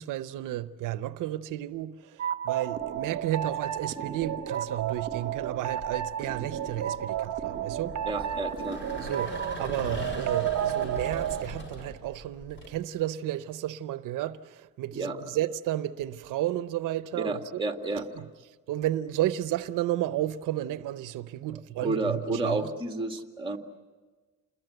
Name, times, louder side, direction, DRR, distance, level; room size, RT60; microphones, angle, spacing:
voice 1, 0.0-8.0 9.0-17.4 18.7-22.6, right 13 dB, 80° right, 0.8 m, -32 dB
sound 1, 2.2-11.4, right 10 dB, 55° right, 1.1 m, -32 dB
sound 2, 2.8-3.3 4.4-12.7, equal, 40° left, 6.7 m, -41 dB
voice 2, 8.0-8.8 14.9-15.3 17.1-18.3 21.8-23.6, right 2 dB, 15° right, 2.1 m, -31 dB
28.5 x 21.5 x 8.1 m
cardioid pair, 150°, 31 cm